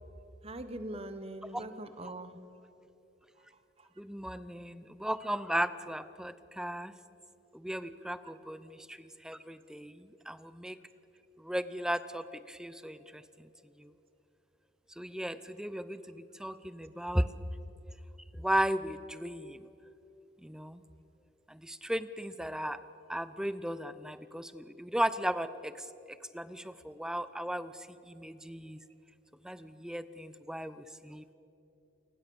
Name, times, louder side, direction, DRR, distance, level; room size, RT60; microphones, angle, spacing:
voice 1, 0.4-2.4, right 1 dB, 30° right, 10 dB, 1.1 m, -42 dB
voice 2, 4.0-6.9 7.5-10.8 11.4-13.5 13.8-13.9 15.0-17.3 18.3-19.7 20.4-20.8 21.5-22.8 23.1-28.8 29.4-31.2, equal, 5° right, 14 dB, 0.6 m, -36 dB
29.0 x 20.5 x 7.1 m, 3.0 s
head